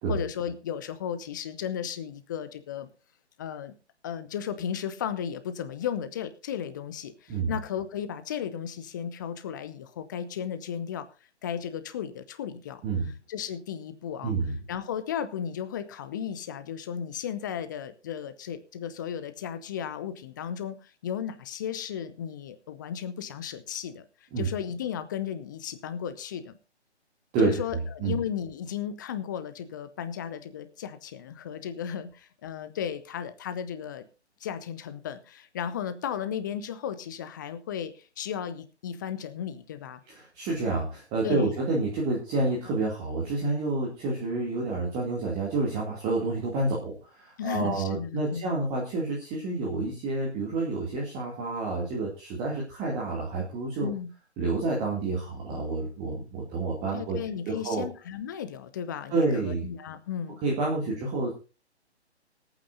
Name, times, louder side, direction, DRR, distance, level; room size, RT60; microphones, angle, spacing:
voice 1, 0.1-2.9 3.4-3.7 4.0-11.1 11.4-12.8 13.3-14.3 14.7-24.1 24.4-26.6 27.4-34.0 34.4-40.0 41.2-41.6 47.4-48.6 53.8-54.1 56.9-60.4 60.9-61.0, left 8 dB, 20° left, 12 dB, 0.7 m, -35 dB
voice 2, 14.2-14.6 24.3-24.5 27.3-28.1 40.1-53.9 54.4-57.2 57.5-57.9 59.1-59.7 60.4-61.3, right 3 dB, 15° right, -3 dB, 2.4 m, -29 dB
25.0 x 8.9 x 2.6 m, 0.32 s
figure-of-eight pair, 135°, 34 cm